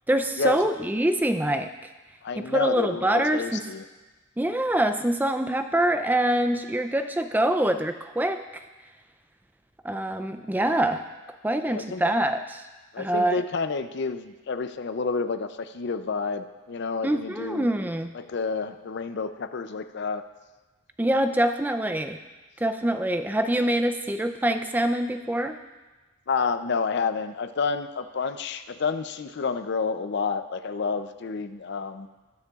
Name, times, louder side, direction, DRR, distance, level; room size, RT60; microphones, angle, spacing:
voice 1, 0.1-1.7 2.4-3.6 4.4-8.4 9.8-11.0 11.4-12.6 13.0-13.4 17.0-18.1 21.0-22.2 22.6-25.6, right 1 dB, 10° right, 8 dB, 0.4 m, -25 dB
voice 2, 2.2-3.8 11.7-12.0 12.9-17.7 18.1-20.2 26.3-32.1, left 5 dB, 55° left, 10 dB, 0.5 m, -29 dB
20.0 x 6.7 x 2.4 m, 1.2 s
head